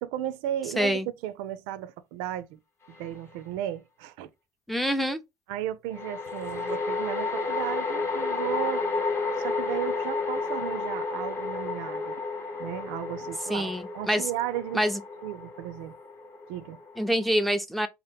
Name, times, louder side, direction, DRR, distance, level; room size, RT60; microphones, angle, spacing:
voice 1, 0.0-2.6 3.0-4.3 5.5-8.8 9.4-12.2 12.6-14.9 15.2-15.9 16.5-16.8, right 12 dB, 90° right, 0.4 m, -34 dB
voice 2, 0.8-1.1 4.7-5.2 13.5-14.3 14.7-15.0 17.0-17.9, equal, ahead, 0.3 m, -26 dB
sound 1, 3.0-3.1 5.9-17.3, left 3 dB, 35° left, 0.8 m, -32 dB
2.8 x 2.0 x 3.3 m
cardioid pair, 120°, 8 cm